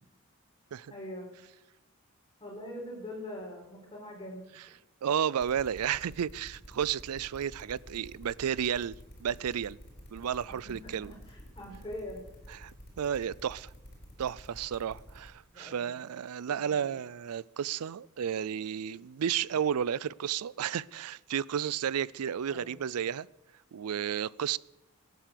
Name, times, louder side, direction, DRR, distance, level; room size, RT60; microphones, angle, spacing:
voice 1, 0.9-1.3 2.4-4.6 10.5-12.2 15.5-16.0 16.5-16.9 22.5-22.7, left 1 dB, 20° left, 4.5 m, -43 dB
voice 2, 5.0-8.9 9.2-9.8 10.1-11.1 12.6-13.7 14.2-23.3 23.7-24.6, right 8 dB, 90° right, 0.4 m, -32 dB
sound 1, 5.4-15.3, equal, 45° left, 4.1 m, -49 dB
18.0 x 9.4 x 6.7 m
head